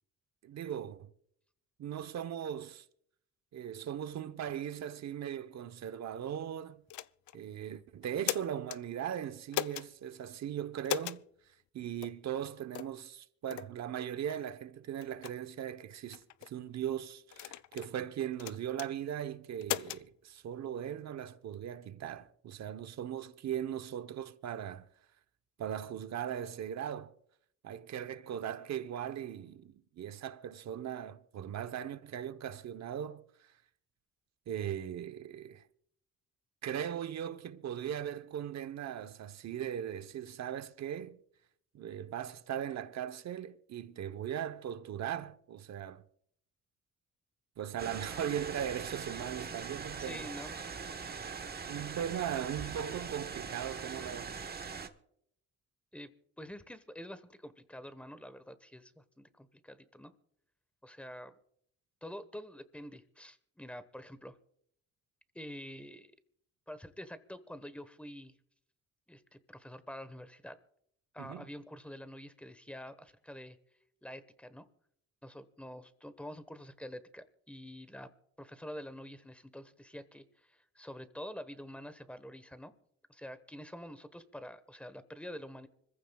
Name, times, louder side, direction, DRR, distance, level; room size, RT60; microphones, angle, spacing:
voice 1, 0.4-1.1 1.8-2.8 3.5-6.8 7.3-11.2 11.7-24.9 25.6-27.1 27.6-33.2 34.5-35.6 36.6-41.2 41.7-46.0 47.6-50.2 51.7-54.4 71.2-71.4, right 10 dB, 60° right, 1.0 m, -39 dB
sound 1, 6.9-7.4 8.0-8.8 9.5-9.9 10.8-11.2 12.0-12.2 12.7-13.0 13.5-13.7 14.3-14.4 15.0-15.3 16.1-16.5 17.3-17.9 18.4-18.9 19.6-20.0, left 14 dB, 70° left, 0.5 m, -37 dB
sound 2, 47.8-54.9, right 5 dB, 30° right, 1.2 m, -42 dB
voice 2, 50.0-50.7 55.9-56.1 56.4-60.1 60.8-61.3 62.0-64.4 65.3-66.1 66.7-68.3 69.1-70.6 71.1-73.6 74.0-74.7 75.2-78.1 78.4-82.7 83.1-85.7, equal, 5° left, 1.2 m, -47 dB
25.5 x 15.0 x 2.3 m
cardioid pair, 90°, 30 cm